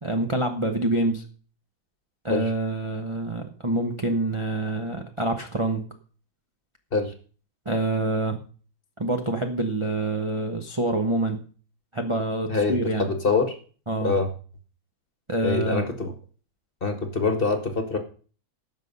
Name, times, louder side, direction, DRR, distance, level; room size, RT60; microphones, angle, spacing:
voice 1, 0.0-1.2 2.2-5.9 7.6-8.4 9.0-11.4 11.9-13.1 13.9-14.1 15.3-15.8, right 2 dB, 20° right, 3 dB, 0.8 m, -26 dB
voice 2, 12.5-13.6 14.0-14.3 15.4-16.1 16.8-18.0, left 4 dB, 30° left, 7 dB, 1.5 m, -25 dB
16.5 x 6.4 x 5.5 m, 0.40 s
omnidirectional pair, 2.2 m